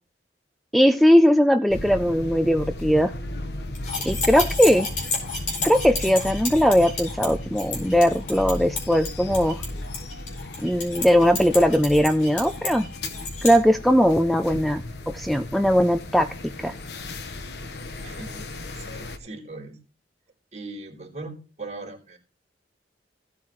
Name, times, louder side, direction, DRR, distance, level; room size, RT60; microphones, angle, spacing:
voice 1, 0.7-3.1 4.0-4.9 5.6-9.6 10.6-12.8 13.4-14.8 15.1-16.3 16.6-16.7, equal, ahead, 8 dB, 0.4 m, -19 dB
sound 1, 1.7-19.2, left 1 dB, 65° left, 1.1 m, -35 dB
sound 2, 3.7-13.6, left 3 dB, 45° left, 4.6 m, -31 dB
voice 2, 18.0-19.8 20.5-22.2, right 2 dB, 40° right, -1 dB, 3.1 m, -39 dB
16.0 x 8.5 x 3.1 m, 0.35 s
head